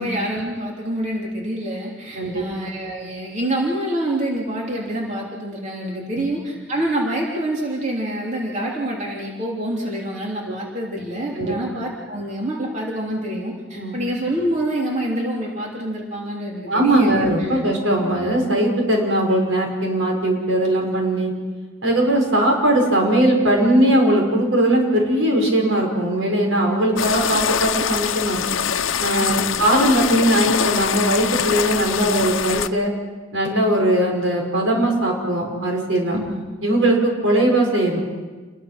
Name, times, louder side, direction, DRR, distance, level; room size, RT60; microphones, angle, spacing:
voice 1, 0.0-17.6 29.2-29.6 36.1-36.4, right 1 dB, 40° right, -2 dB, 3.4 m, -26 dB
voice 2, 16.7-21.3 21.8-28.4 29.0-32.9 33.3-36.2 36.6-38.0, right 1 dB, 80° right, 1 dB, 6.0 m, -19 dB
sound 1, 27.0-32.7, left 7 dB, 85° left, 0.8 m, -23 dB
29.5 x 21.5 x 6.1 m, 1.3 s
head